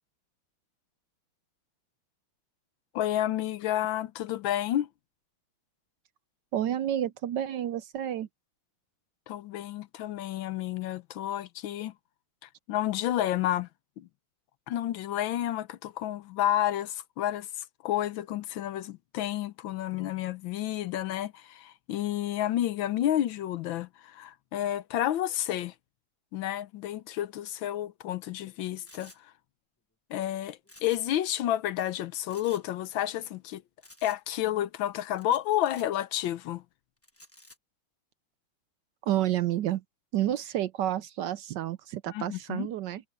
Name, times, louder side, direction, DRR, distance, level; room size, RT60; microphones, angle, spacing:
voice 1, 2.9-4.9 9.3-11.9 12.4-13.7 14.0-14.1 14.7-25.7 26.3-29.3 30.1-33.6 34.0-36.6 42.1-42.7, left 12 dB, 75° left, 1.4 m, -30 dB
voice 2, 6.5-8.3 39.0-39.8 40.1-43.0, right 12 dB, 70° right, 1.1 m, -30 dB
sound 1, 28.9-29.2 30.6-31.2 31.4-31.5 32.3-32.6 33.8-34.2 35.2-35.9 37.0-37.6, left 1 dB, 10° left, 0.8 m, -53 dB
omnidirectional pair, 2.2 m